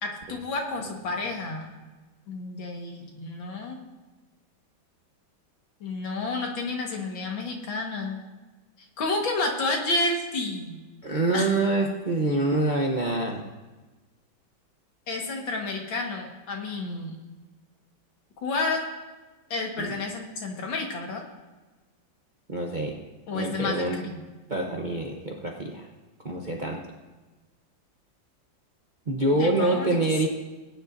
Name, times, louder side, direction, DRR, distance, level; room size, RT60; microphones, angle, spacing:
voice 1, 0.0-1.7 2.3-3.8 5.8-8.2 8.8-10.8 11.3-11.5 15.1-17.2 18.4-18.8 19.5-21.2 23.3-24.2 29.4-30.0, left 3 dB, 80° left, 1 dB, 2.3 m, -30 dB
voice 2, 11.0-13.4 19.8-19.9 22.5-22.9 23.3-24.0 24.5-25.9 26.2-26.8 29.1-30.3, right 2 dB, 40° right, -1 dB, 0.7 m, -26 dB
19.5 x 9.7 x 2.6 m, 1.2 s
omnidirectional pair, 2.1 m